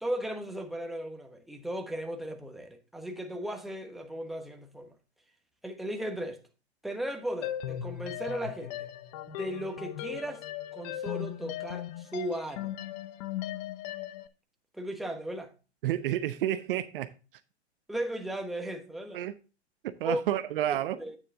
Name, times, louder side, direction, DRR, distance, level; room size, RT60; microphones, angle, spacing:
voice 1, 0.0-5.0 5.6-6.4 6.8-8.9 9.3-10.5 10.7-12.7 14.7-15.5 17.9-19.2 20.0-20.2 20.7-21.2, right 1 dB, ahead, 1.1 m, -36 dB
sound 1, 7.4-14.3, left 12 dB, 40° left, 0.8 m, -38 dB
voice 2, 15.8-17.1 19.1-19.3 19.8-21.0, right 12 dB, 50° right, 0.7 m, -30 dB
9.2 x 6.6 x 3.6 m
hypercardioid pair, 120°, 34 cm